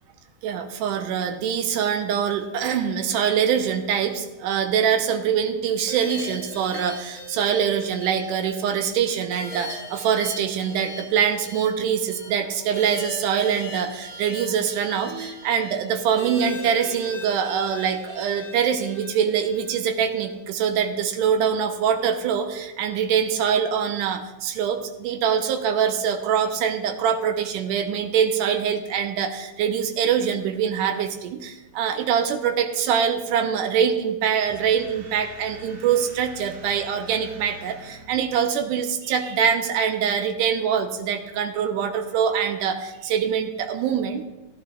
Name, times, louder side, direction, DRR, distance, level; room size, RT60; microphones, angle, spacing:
voice 1, 0.4-44.2, right 7 dB, 90° right, 6 dB, 2.3 m, -24 dB
sound 1, 5.9-20.3, left 1 dB, 35° left, 4.2 m, -39 dB
sound 2, 34.4-38.4, equal, 60° right, 3.2 m, -45 dB
15.0 x 9.9 x 2.5 m, 1.0 s
omnidirectional pair, 3.6 m